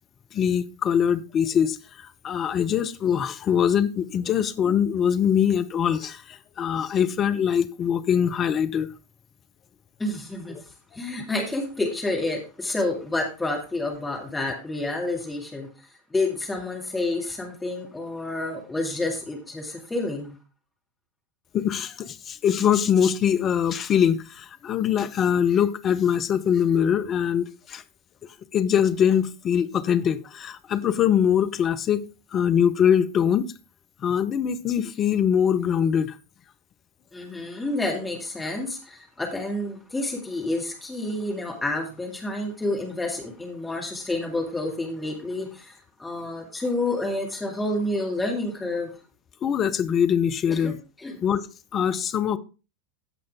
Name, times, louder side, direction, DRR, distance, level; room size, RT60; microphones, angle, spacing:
voice 1, 0.3-8.9 21.5-27.8 28.5-32.0 32.3-33.5 34.0-36.2 49.4-50.8 51.2-51.4 51.7-52.4, left 8 dB, 30° left, 0.7 m, -23 dB
voice 2, 10.0-10.6 10.9-15.7 16.1-20.3 37.1-48.9 50.5-50.7 51.0-51.2, left 2 dB, 10° left, 2.2 m, -29 dB
15.5 x 5.4 x 3.5 m
figure-of-eight pair, 90°, 0 cm